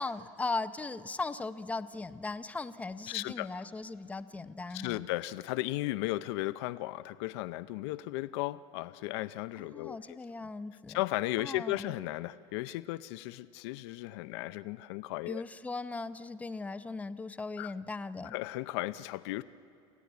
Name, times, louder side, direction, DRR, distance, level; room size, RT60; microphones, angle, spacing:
voice 1, 0.0-5.0 9.6-11.0 11.4-11.9 15.3-18.3, left 3 dB, 10° left, 12 dB, 0.6 m, -38 dB
voice 2, 3.1-3.7 4.7-10.2 10.9-15.4 17.6-17.7 18.2-19.4, left 17 dB, 80° left, 14 dB, 0.6 m, -35 dB
27.5 x 15.0 x 9.5 m, 2.6 s
cardioid pair, 145°, 14 cm